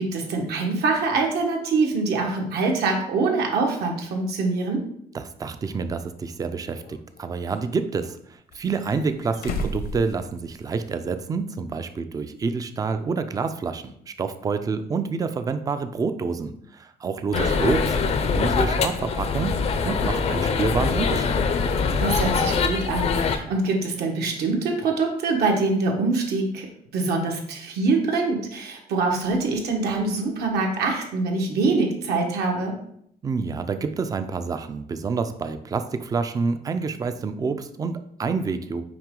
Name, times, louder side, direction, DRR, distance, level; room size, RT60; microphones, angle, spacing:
voice 1, 0.0-4.8 17.3-17.7 22.0-26.7 26.9-32.7, right 3 dB, 75° right, 1 dB, 1.4 m, -24 dB
voice 2, 5.1-21.4 33.2-38.8, right 4 dB, 20° right, 9 dB, 0.4 m, -28 dB
sound 1, 5.7-5.8 6.7-7.6 8.5-10.8 11.1-11.2 12.8-12.9, left 1 dB, 65° left, 0.8 m, -34 dB
sound 2, 17.3-23.4, left 5 dB, 40° left, 0.5 m, -23 dB
5.9 x 4.9 x 3.7 m, 0.70 s
cardioid pair, 165°, 17 cm